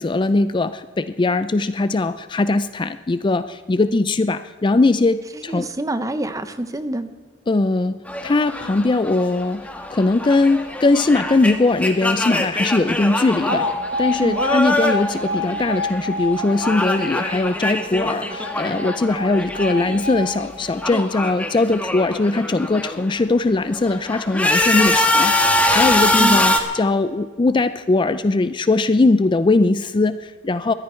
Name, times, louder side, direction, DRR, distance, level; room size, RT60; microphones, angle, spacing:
voice 1, 0.0-5.7 7.5-9.6 9.9-13.7 14.0-25.3 25.7-30.7, left 2 dB, 25° left, 12 dB, 0.4 m, -20 dB
voice 2, 5.5-7.1 14.2-14.4 26.2-26.4, right 1 dB, 20° right, 11 dB, 0.8 m, -26 dB
sound 1, 8.1-16.1 16.3-20.1 20.4-23.1 23.6-26.6, left 1 dB, 10° left, 1.3 m, -23 dB
Alarm, 13.5-21.5, left 2 dB, 90° right, 4.0 m, -28 dB
21.0 x 14.0 x 4.4 m, 1.5 s
head